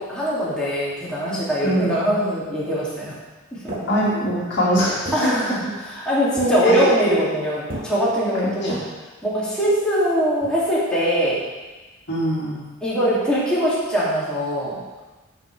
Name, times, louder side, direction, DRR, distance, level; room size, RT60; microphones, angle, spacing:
voice 1, 0.0-3.1 3.6-3.7 5.1-8.8 9.2-11.4 12.8-14.8, equal, 5° left, -10 dB, 2.5 m, -22 dB
voice 2, 1.6-2.0 3.9-5.1 6.6-6.9 8.6-8.8 12.1-12.6, equal, 55° left, -7 dB, 2.2 m, -22 dB
sound 1, 3.7-4.5 5.1-6.1 6.4-7.0 7.7-8.2, right 1 dB, 40° right, 1.7 m, -35 dB
12.0 x 5.6 x 3.4 m, 1.2 s
head